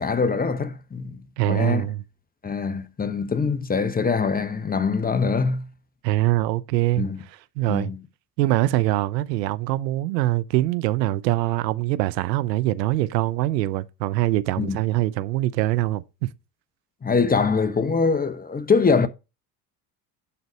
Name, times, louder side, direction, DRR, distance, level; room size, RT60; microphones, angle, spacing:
voice 1, 0.0-1.2 1.5-1.9 2.4-5.7 7.0-7.2 7.7-8.0 14.6-14.8 17.0-19.1, left 5 dB, 20° left, 0.9 m, -23 dB
voice 2, 1.4-2.0 6.0-7.1 7.6-7.9 8.4-16.3, right 16 dB, 80° right, 0.8 m, -23 dB
11.0 x 4.0 x 4.8 m
hypercardioid pair, 80°, 49 cm